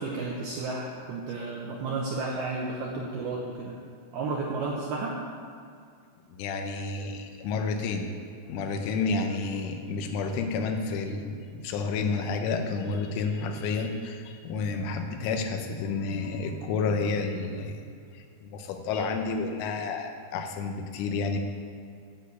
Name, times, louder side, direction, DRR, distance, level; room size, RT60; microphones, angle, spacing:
voice 1, 0.0-3.8 4.1-5.2, right 3 dB, 75° right, -2 dB, 2.3 m, -32 dB
voice 2, 6.3-8.1 8.5-17.9 18.1-21.4, left 4 dB, 80° left, 4 dB, 3.4 m, -30 dB
10.5 x 6.3 x 8.2 m, 2.3 s
omnidirectional pair, 5.6 m